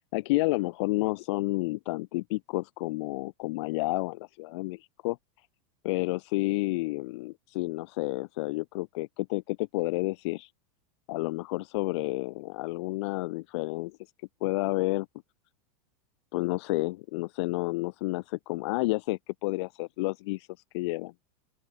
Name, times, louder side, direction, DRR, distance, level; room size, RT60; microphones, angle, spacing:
voice 1, 0.0-5.2 5.8-10.5 11.1-14.0 14.4-15.1 16.3-20.5 20.7-21.1, left 22 dB, 55° left, 1.7 m, -30 dB
open air
supercardioid pair, 170°, 18 cm